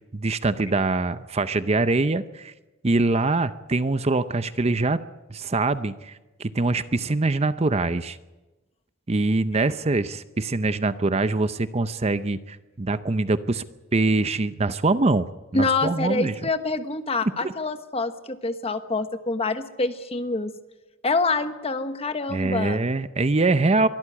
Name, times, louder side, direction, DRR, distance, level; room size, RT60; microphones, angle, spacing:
voice 1, 0.1-2.5 2.8-5.0 5.3-8.2 9.1-13.6 13.9-15.3 15.5-16.3 17.4-17.5 22.3-23.9, right 3 dB, 30° right, 13 dB, 0.6 m, -23 dB
voice 2, 15.5-20.5 21.0-22.8, left 3 dB, 30° left, 9 dB, 1.2 m, -26 dB
23.0 x 13.0 x 9.9 m, 1.1 s
head